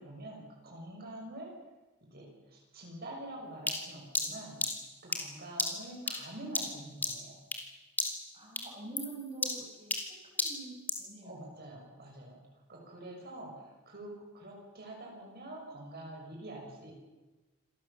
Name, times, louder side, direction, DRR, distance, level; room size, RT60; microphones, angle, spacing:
voice 1, 0.0-1.5 2.0-4.6 5.0-7.4 11.2-12.4 12.7-16.9, right 1 dB, 50° right, -1 dB, 6.1 m, -46 dB
sound 1, 3.7-7.7 8.0-8.3 8.6-11.1, left 2 dB, 10° left, 3.0 m, -34 dB
voice 2, 8.3-11.6, right 3 dB, 30° right, 1 dB, 6.2 m, -46 dB
27.0 x 17.5 x 7.3 m, 1.1 s
head